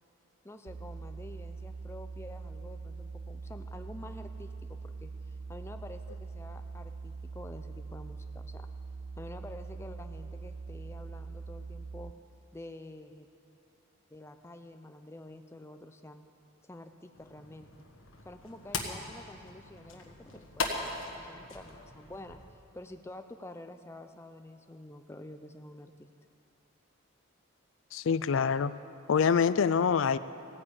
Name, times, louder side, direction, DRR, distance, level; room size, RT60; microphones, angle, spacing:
voice 1, 0.4-8.7 9.2-12.1 12.5-13.3 14.1-16.3 16.7-17.7 18.2-26.1, left 1 dB, 10° left, 7 dB, 0.5 m, -48 dB
sound 1, 0.7-12.1, right 4 dB, 80° right, 0.5 m, -43 dB
sound 2, 17.1-22.5, left 3 dB, 90° left, 1.5 m, -40 dB
voice 2, 27.9-28.7 29.1-30.2, left 6 dB, 70° left, 15 dB, 0.4 m, -25 dB
15.5 x 9.8 x 8.7 m, 2.6 s
head